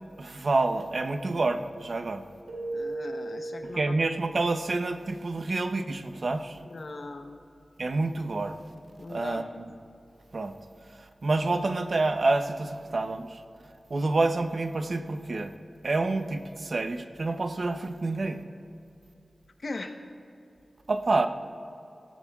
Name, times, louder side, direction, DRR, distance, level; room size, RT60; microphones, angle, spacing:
voice 1, 0.2-2.3 3.6-6.6 7.8-8.6 9.1-9.5 10.3-10.5 11.2-13.4 13.9-15.5 15.8-18.4 20.9-21.3, right 3 dB, 60° right, 7 dB, 0.7 m, -28 dB
Keyboard (musical), 2.5-4.5, right 2 dB, 80° right, 3.1 m, -36 dB
voice 2, 2.7-3.9 6.7-7.4 9.0-9.4 19.6-20.0, left 3 dB, 65° left, 5 dB, 0.9 m, -39 dB
18.0 x 16.5 x 2.4 m, 2.7 s
wide cardioid pair, 90°, 0 cm